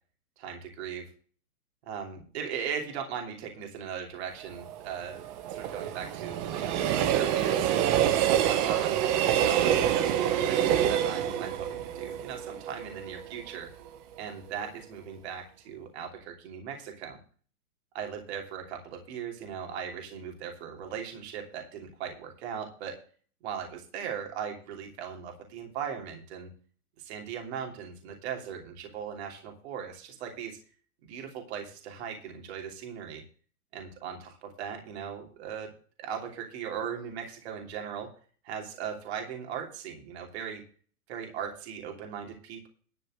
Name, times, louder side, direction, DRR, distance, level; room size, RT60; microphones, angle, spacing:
voice 1, 0.4-1.1 1.9-7.7 8.4-13.7 14.2-17.2 17.9-23.0 23.4-26.5 27.0-30.6 31.0-33.2 33.7-35.7 36.0-38.1 38.4-40.6 41.1-42.7, right 7 dB, 45° right, 2 dB, 3.0 m, -38 dB
Train, 4.4-13.5 13.9-14.0, right 10 dB, 25° right, 1.1 m, -27 dB
11.5 x 5.3 x 7.6 m, 0.40 s
hypercardioid pair, 145°, 46 cm